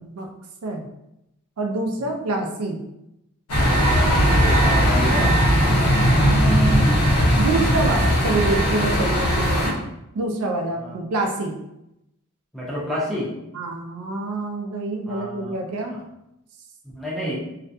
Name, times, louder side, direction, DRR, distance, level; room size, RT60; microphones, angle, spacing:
voice 1, 1.6-2.8 6.0-6.9 7.4-9.8 10.1-11.5 13.5-16.0, right 2 dB, 75° right, 2 dB, 0.4 m, -26 dB
sound 1, 3.5-9.7, equal, 75° left, 0.9 m, -18 dB
voice 2, 3.6-5.5 10.8-11.0 12.5-13.3 15.1-15.6 15.9-16.0 17.0-17.4, left 1 dB, ahead, -7 dB, 0.6 m, -30 dB
2.3 x 2.1 x 2.6 m, 0.84 s
head